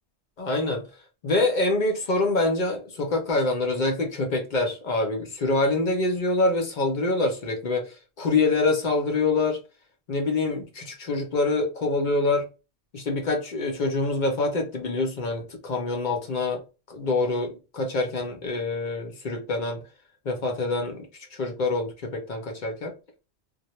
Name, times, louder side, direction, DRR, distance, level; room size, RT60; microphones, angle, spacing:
voice 1, 0.4-0.8 1.2-9.6 10.1-12.5 12.9-16.6 16.9-19.8 20.2-22.9, left 2 dB, 50° left, 0.6 m, -25 dB
2.1 x 2.0 x 2.9 m
omnidirectional pair, 1.1 m